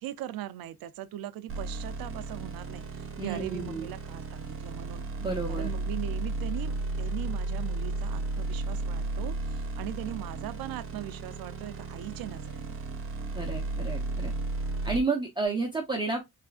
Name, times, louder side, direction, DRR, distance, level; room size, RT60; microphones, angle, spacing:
voice 1, 0.0-5.1 5.5-12.8, right 13 dB, 80° right, 0.5 m, -40 dB
sound 1, 1.5-15.0, right 2 dB, 40° right, 0.8 m, -34 dB
voice 2, 3.2-3.9 5.2-5.7 13.3-14.3 14.8-16.2, right 3 dB, 15° right, 0.6 m, -31 dB
3.6 x 3.3 x 2.3 m
cardioid pair, 150°, 35 cm